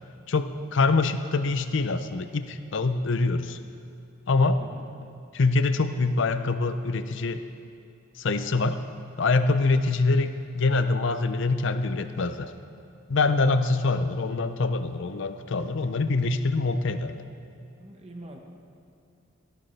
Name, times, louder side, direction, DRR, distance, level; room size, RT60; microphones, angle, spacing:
voice 1, 0.3-3.6 4.3-4.6 5.3-7.4 8.2-8.8 9.2-12.5 13.1-17.2, left 3 dB, 60° left, 10 dB, 0.6 m, -24 dB
voice 2, 17.8-18.4, right 1 dB, 30° right, 1 dB, 1.1 m, -43 dB
16.5 x 12.5 x 3.3 m, 2.6 s
head